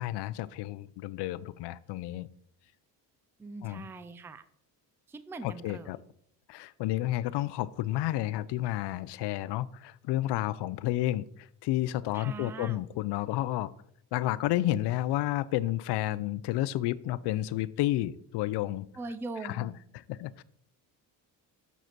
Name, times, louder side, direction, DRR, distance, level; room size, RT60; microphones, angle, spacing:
voice 1, 0.0-2.3 3.6-3.8 5.4-6.0 6.5-11.2 11.6-13.7 14.1-18.9 19.4-19.7 20.1-20.4, left 15 dB, 75° left, 18 dB, 0.5 m, -31 dB
voice 2, 3.4-4.4 5.1-5.9 12.1-12.8 19.0-19.8, right 3 dB, 5° right, 12 dB, 0.3 m, -41 dB
6.7 x 4.9 x 6.0 m, 0.67 s
cardioid pair, 125°, 41 cm